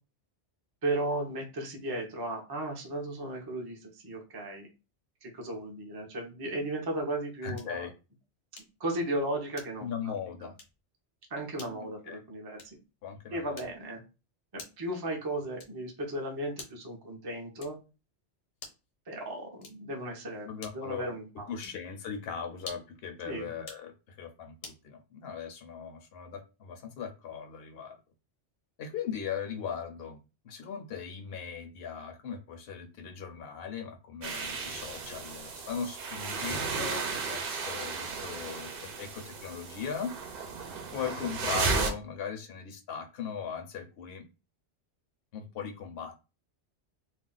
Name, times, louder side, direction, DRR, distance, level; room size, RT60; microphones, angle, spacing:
voice 1, 0.8-4.7 5.2-7.9 8.8-10.1 10.4-10.5 11.3-12.8 13.3-14.0 14.5-17.8 19.1-21.5 23.2-23.5, right 1 dB, 25° right, 0 dB, 0.5 m, -35 dB
voice 2, 7.4-7.9 9.8-10.5 11.7-11.8 12.1-12.2 13.0-13.7 20.5-21.1 21.5-28.0 28.8-30.2 30.4-40.1 40.9-44.2 45.3-46.2, left 7 dB, 65° left, 6 dB, 0.8 m, -39 dB
sound 1, 7.5-7.9 8.6-8.9 9.5-10.0 10.5-10.8 11.5-11.8 12.5-12.9 13.5-14.0 14.6-14.9 15.6-15.9 16.5-17.0 17.6-17.9 18.5-18.9 19.6-20.0 20.6-21.0 21.6-21.9 22.6-23.0 23.6-23.9 24.6-24.9, left 4 dB, 85° left, 1.2 m, -49 dB
sound 2, 34.2-41.9, right 4 dB, 60° right, 0.7 m, -34 dB
2.5 x 2.1 x 3.8 m, 0.30 s
omnidirectional pair, 1.2 m